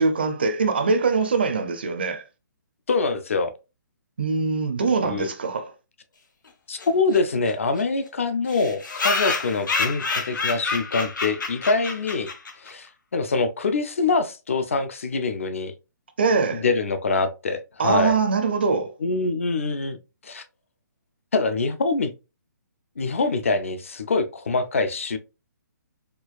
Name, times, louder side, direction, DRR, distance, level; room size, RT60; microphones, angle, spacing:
voice 1, 0.0-2.2 4.2-5.7 16.2-16.6 17.8-18.9, right 4 dB, 30° right, 0.4 m, -23 dB
voice 2, 2.9-3.5 5.0-5.3 6.7-12.3 12.6-15.7 16.5-18.2 19.0-20.0 20.2-20.5 21.3-22.1 23.0-25.2, left 3 dB, 45° left, 0.4 m, -24 dB
sound 1, 6.8-6.9 7.1-7.2 7.5-7.6 7.8-7.9 8.5-12.7, left 4 dB, 75° left, 1.0 m, -28 dB
4.4 x 2.3 x 2.3 m
hypercardioid pair, 180°, 10 cm